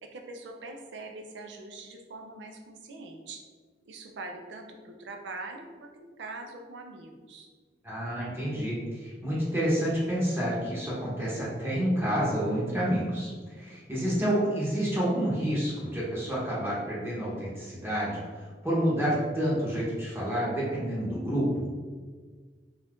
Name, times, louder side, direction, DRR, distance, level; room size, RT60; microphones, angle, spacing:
voice 1, 0.0-3.4 3.8-7.5, right 3 dB, 90° right, 3 dB, 0.4 m, -43 dB
voice 2, 7.8-13.3 13.6-21.7, equal, 15° right, -7 dB, 0.8 m, -29 dB
2.5 x 2.4 x 3.4 m, 1.5 s
head